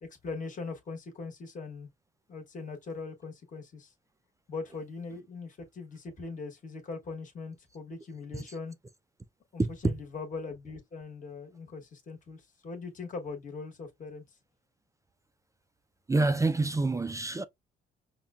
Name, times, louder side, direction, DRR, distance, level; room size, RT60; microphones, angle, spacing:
voice 1, 0.0-1.9 2.3-3.9 4.5-8.7 9.5-14.4, left 4 dB, 40° left, 1.2 m, -41 dB
voice 2, 9.6-9.9 16.1-17.4, right 3 dB, 15° right, 0.3 m, -27 dB
5.6 x 2.2 x 2.3 m
cardioid pair, 90°, 20 cm